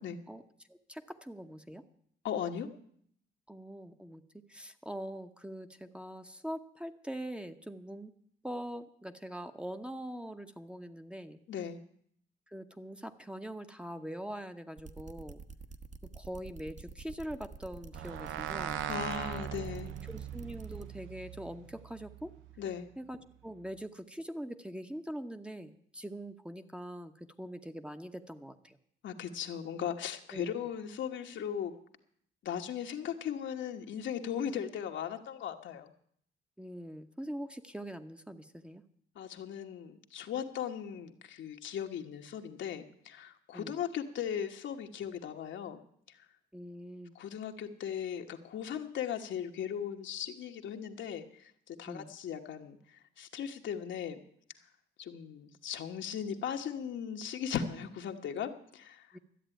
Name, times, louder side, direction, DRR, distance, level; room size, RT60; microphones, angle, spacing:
voice 1, 0.7-1.8 3.5-4.2 4.5-8.1 8.4-11.4 12.5-15.4 16.1-18.8 20.1-22.3 23.0-28.8 30.3-30.5 36.6-38.8 43.5-43.7 46.5-47.2 51.9-52.1 59.1-59.2, equal, 5° right, 8 dB, 0.9 m, -43 dB
voice 2, 2.2-2.7 11.5-11.8 18.9-19.9 22.6-22.9 29.0-31.7 32.4-35.9 39.1-45.8 46.1-46.2 47.1-54.2 55.0-59.1, left 8 dB, 70° left, 5 dB, 1.3 m, -38 dB
sound 1, 14.8-20.9, right 4 dB, 35° right, 1.1 m, -48 dB
sound 2, 17.9-22.6, right 10 dB, 85° right, 0.7 m, -40 dB
13.0 x 8.1 x 9.0 m, 0.66 s
cardioid pair, 90°, 20 cm